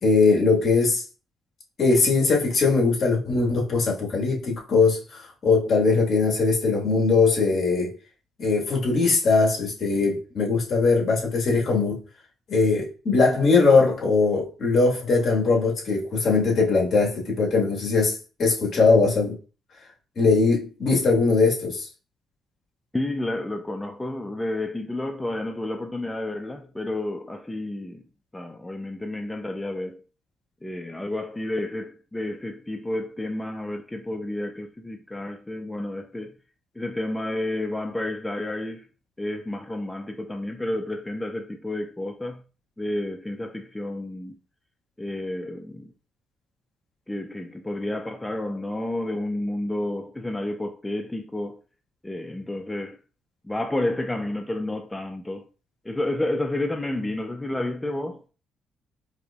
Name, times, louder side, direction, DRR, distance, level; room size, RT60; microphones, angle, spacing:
voice 1, 0.0-1.0 1.8-7.9 8.4-12.0 12.5-19.4 20.2-21.9, left 4 dB, 55° left, 1.4 m, -21 dB
voice 2, 22.9-28.0 28.3-30.0 30.6-36.3 36.8-38.9 39.2-42.4 42.8-44.4 45.0-45.9 47.1-51.6 52.0-53.0 53.4-55.4 55.8-58.2, left 1 dB, 10° left, 0.4 m, -30 dB
4.8 x 2.5 x 2.3 m
cardioid pair, 90°, 0 cm